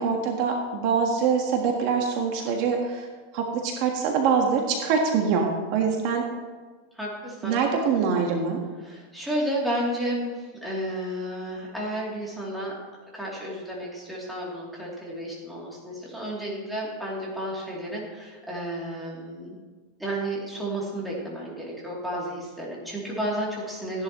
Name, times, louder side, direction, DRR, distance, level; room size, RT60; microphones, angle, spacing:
voice 1, 0.0-3.1 3.3-6.2 7.4-8.6, right 5 dB, 50° right, 1 dB, 1.4 m, -24 dB
voice 2, 6.9-7.6 8.8-12.8 13.1-19.5 20.0-24.0, right 1 dB, 5° right, -5 dB, 2.9 m, -32 dB
15.0 x 10.5 x 3.1 m, 1.4 s
supercardioid pair, 150°, 0 cm